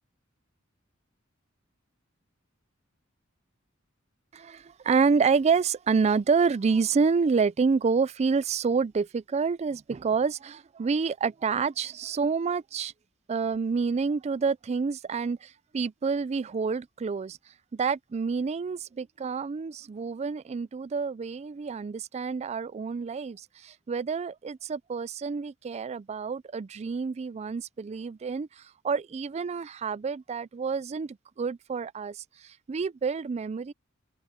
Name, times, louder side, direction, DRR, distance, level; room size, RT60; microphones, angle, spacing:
voice 1, 4.3-12.9 13.3-17.4 17.7-33.7, right 5 dB, 30° right, 0.3 m, -28 dB
open air
head